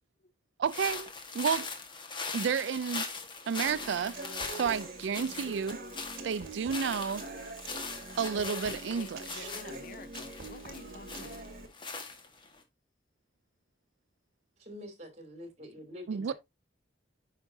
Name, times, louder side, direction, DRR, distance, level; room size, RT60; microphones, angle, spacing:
voice 1, 0.6-1.1 1.3-1.7 2.3-3.0 3.5-4.2 4.5-5.8 6.2-7.2 8.2-9.5 16.1-16.3, right 6 dB, 85° right, 0.4 m, -31 dB
sound 1, 0.7-12.6, left 4 dB, 25° left, 1.5 m, -41 dB
Human voice / Acoustic guitar, 3.7-11.7, right 2 dB, 55° right, 1.8 m, -44 dB
voice 2, 8.9-11.5, left 4 dB, 45° left, 0.5 m, -50 dB
voice 3, 14.6-16.3, left 1 dB, 40° right, 3.2 m, -46 dB
9.7 x 5.7 x 2.7 m
head